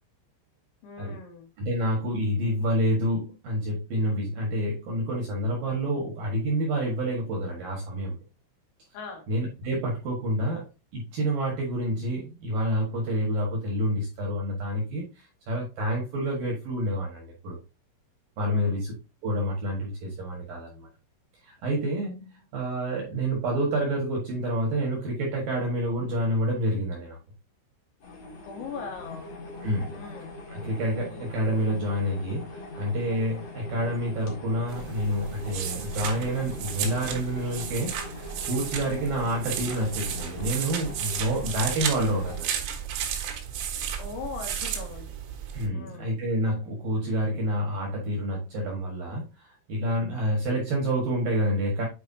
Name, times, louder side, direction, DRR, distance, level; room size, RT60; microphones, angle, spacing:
voice 1, 0.8-1.5 8.9-9.3 18.4-18.8 28.4-29.3 29.9-30.4 44.0-45.2 45.7-46.1, left 5 dB, 80° left, 2 dB, 4.5 m, -40 dB
voice 2, 1.6-8.2 9.3-10.7 10.9-17.6 18.4-18.9 19.2-20.9 21.4-27.2 29.6-30.0 30.5-42.6 45.5-51.9, equal, 60° right, -2 dB, 2.4 m, -28 dB
sound 1, 28.0-42.4, left 2 dB, 50° left, 1.9 m, -41 dB
sound 2, 34.7-45.7, right 8 dB, 75° right, 3.8 m, -34 dB
9.2 x 4.5 x 2.7 m, 0.28 s
omnidirectional pair, 6.0 m